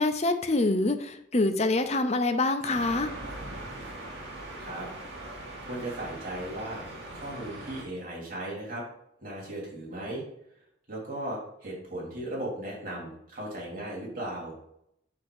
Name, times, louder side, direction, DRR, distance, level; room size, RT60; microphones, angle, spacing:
voice 1, 0.0-3.1, left 2 dB, 35° left, 8 dB, 0.6 m, -25 dB
sound 1, 2.6-7.8, right 1 dB, 80° right, 2.0 m, -40 dB
voice 2, 5.6-6.8 7.1-8.8 9.2-10.2 10.9-14.5, right 1 dB, 45° right, -5 dB, 3.1 m, -36 dB
8.5 x 2.9 x 6.1 m, 0.75 s
head